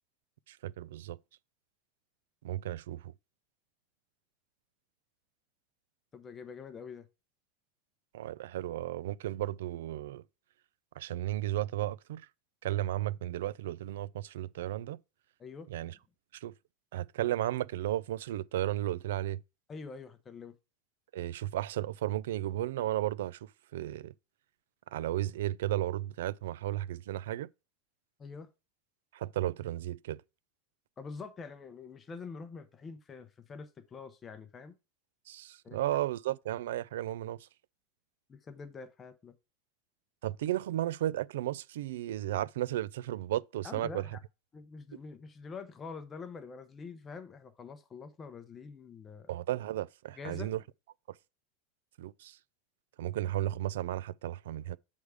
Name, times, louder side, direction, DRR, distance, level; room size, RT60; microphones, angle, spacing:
voice 1, 0.5-1.2 2.4-3.1 8.1-10.2 11.0-12.3 12.6-15.0 15.7-16.0 16.3-16.5 16.9-19.4 21.1-24.1 24.9-27.5 29.1-30.2 35.3-37.5 40.2-44.1 49.3-50.6 52.0-52.4 53.0-54.8, right 14 dB, 85° right, 0.3 m, -34 dB
voice 2, 6.1-7.0 15.4-15.7 19.7-20.5 28.2-28.5 31.0-34.7 35.6-36.0 38.3-39.3 43.6-44.2 44.5-49.3 50.2-50.5, left 5 dB, 15° left, 0.7 m, -45 dB
8.0 x 3.5 x 4.8 m
supercardioid pair, 175°, 0 cm